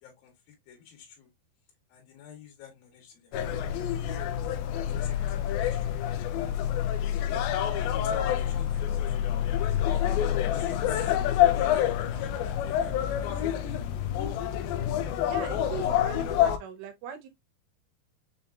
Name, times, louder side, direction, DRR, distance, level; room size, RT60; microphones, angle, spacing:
voice 1, 0.0-1.3 1.9-4.3 4.9-6.8 8.1-9.0 10.5-11.1 11.5-13.8 14.3-14.4, left 7 dB, 65° left, 3.0 m, -50 dB
sound 1, 3.3-16.6, left 10 dB, 80° left, 2.1 m, -27 dB
voice 2, 15.2-17.3, right 8 dB, 85° right, 3.2 m, -40 dB
6.9 x 2.9 x 2.3 m
omnidirectional pair, 4.8 m